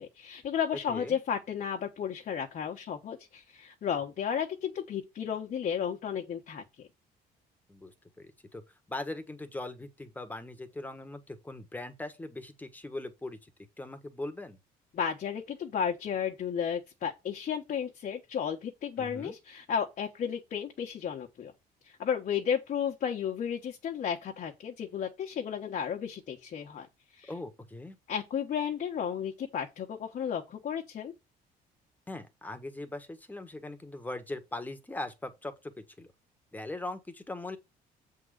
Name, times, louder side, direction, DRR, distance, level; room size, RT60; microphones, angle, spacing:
voice 1, 0.0-6.9 14.9-21.5 21.8-26.9 27.1-27.3 28.1-31.1, left 8 dB, 50° left, 1.3 m, -33 dB
voice 2, 7.7-8.6 8.9-13.5 13.8-14.6 19.0-19.4 27.3-28.0 32.1-35.7 36.0-36.1 36.5-37.6, left 2 dB, 10° left, 1.4 m, -40 dB
7.6 x 3.8 x 6.6 m
cardioid pair, 110°, 17 cm